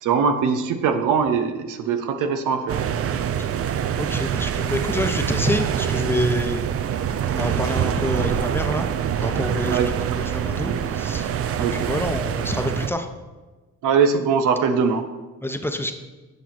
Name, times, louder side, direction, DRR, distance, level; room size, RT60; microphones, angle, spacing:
voice 1, 0.0-2.8 9.7-9.9 10.7-10.8 11.6-12.0 13.8-15.0, right 6 dB, 85° right, 8 dB, 0.9 m, -21 dB
sound 1, 2.7-12.9, right 9 dB, 50° right, 0.5 m, -25 dB
voice 2, 4.0-6.6 7.3-11.3 11.6-13.1 15.4-15.9, left 1 dB, 5° left, 5 dB, 0.9 m, -27 dB
9.6 x 6.0 x 4.3 m, 1.2 s
cardioid pair, 90°, 30 cm